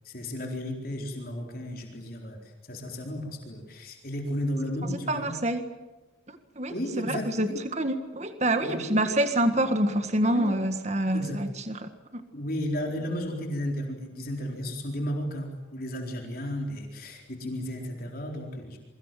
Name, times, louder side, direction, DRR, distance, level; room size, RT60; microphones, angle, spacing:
voice 1, 0.0-5.3 6.7-7.6 8.6-9.0 10.3-10.7 11.1-11.4 12.3-18.8, equal, 50° left, 1 dB, 4.2 m, -34 dB
voice 2, 5.1-5.6 6.3-12.2, right 1 dB, 35° right, 8 dB, 1.8 m, -27 dB
28.0 x 24.0 x 7.6 m, 1.1 s
head